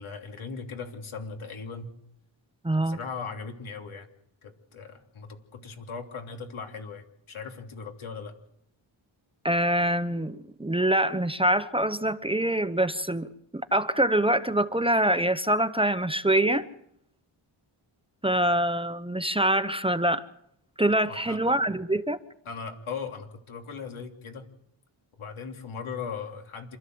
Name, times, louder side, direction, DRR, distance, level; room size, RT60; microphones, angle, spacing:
voice 1, 0.0-1.9 2.8-4.1 4.4-8.3 21.1-21.4 22.4-24.5 25.2-26.8, left 5 dB, 85° left, 4 dB, 3.2 m, -38 dB
voice 2, 2.6-3.0 9.4-13.3 13.5-16.7 18.2-20.2 20.8-22.2, right 1 dB, 10° right, 11 dB, 0.9 m, -25 dB
27.5 x 13.0 x 7.9 m, 0.76 s
wide cardioid pair, 85°, 48 cm